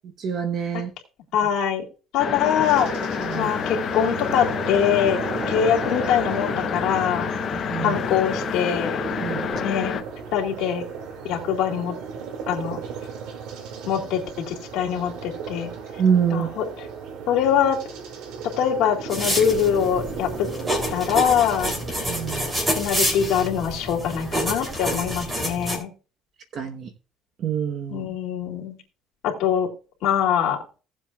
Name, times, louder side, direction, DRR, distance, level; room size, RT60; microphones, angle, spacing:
voice 1, 0.2-0.9 3.2-3.5 7.5-8.0 9.2-9.5 16.0-16.5 22.1-22.5 26.5-26.9 27.4-28.1, right 7 dB, 45° right, 1.1 m, -25 dB
voice 2, 1.3-1.9 2.1-2.9 3.3-5.2 5.5-7.3 7.8-9.0 9.6-10.1 10.3-10.8 11.2-11.9 12.5-12.8 13.9-14.2 14.5-15.7 16.3-16.9 17.3-17.8 18.6-20.5 20.9-21.7 22.7-25.9 27.9-28.8 29.2-29.7 30.0-30.6, left 8 dB, 65° left, 2.4 m, -23 dB
sound 1, 2.2-10.0, left 7 dB, 40° left, 0.7 m, -28 dB
sound 2, 2.6-22.5, right 6 dB, 85° right, 2.2 m, -35 dB
sound 3, 19.1-25.8, equal, 20° right, 3.1 m, -28 dB
17.0 x 7.5 x 2.4 m
cardioid pair, 145°, 0 cm